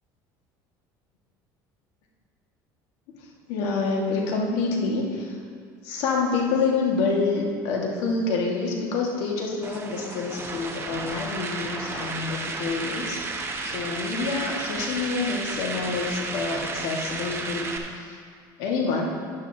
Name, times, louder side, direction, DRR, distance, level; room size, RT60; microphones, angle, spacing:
voice 1, 3.2-5.4 5.8-13.3 13.6-18.2 18.6-19.0, left 4 dB, 75° left, -1 dB, 1.8 m, -27 dB
sound 1, 9.6-17.8, right 3 dB, 25° right, 1.2 m, -33 dB
11.0 x 10.0 x 2.8 m, 2.1 s
supercardioid pair, 95°, 10 cm